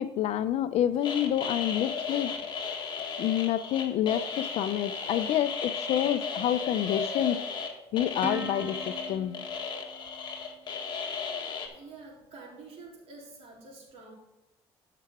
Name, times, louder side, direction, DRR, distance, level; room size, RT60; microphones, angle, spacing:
voice 1, 0.0-2.3 3.2-7.4 7.9-9.4, left 11 dB, 65° left, 12 dB, 0.6 m, -28 dB
sound 1, 1.0-11.7, left 5 dB, 40° left, 1.6 m, -35 dB
Plucked string instrument, 8.2-11.0, right 4 dB, 15° right, 0.6 m, -42 dB
voice 2, 11.7-14.1, right 3 dB, 70° right, -3 dB, 3.5 m, -48 dB
13.5 x 5.9 x 3.7 m, 0.92 s
cardioid pair, 120°, 11 cm